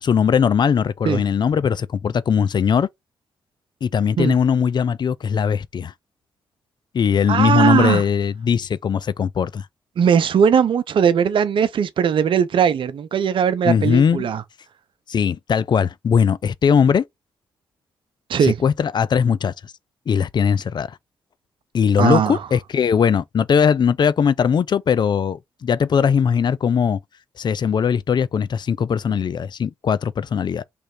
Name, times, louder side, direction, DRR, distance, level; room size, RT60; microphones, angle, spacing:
voice 1, 0.0-2.9 3.8-5.9 6.9-9.6 13.6-14.3 15.1-17.0 18.4-19.5 20.1-20.9 21.7-27.0 27.4-30.6, left 7 dB, 50° left, 0.4 m, -19 dB
voice 2, 7.3-8.0 10.0-14.4 18.3-18.6 22.0-22.4, right 7 dB, 65° right, 0.6 m, -19 dB
3.4 x 3.1 x 4.2 m
hypercardioid pair, 40°, 9 cm